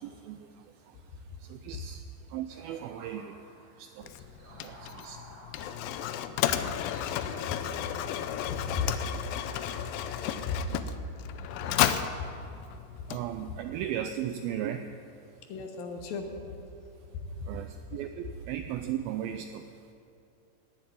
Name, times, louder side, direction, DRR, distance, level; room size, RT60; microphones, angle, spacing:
voice 1, 0.0-6.3 12.0-12.3 12.9-15.7 16.9-19.9, right 10 dB, 85° right, 8 dB, 2.1 m, -39 dB
sound 1, 2.5-11.8, right 1 dB, 35° right, 3.8 m, -54 dB
Mechanisms, 4.0-13.7, left 11 dB, 85° left, 2.0 m, -33 dB
voice 2, 8.4-8.9 10.5-10.6 11.6-11.8 15.5-16.5, left 6 dB, 70° left, 5 dB, 2.4 m, -34 dB
18.5 x 7.4 x 9.2 m, 2.7 s
omnidirectional pair, 4.8 m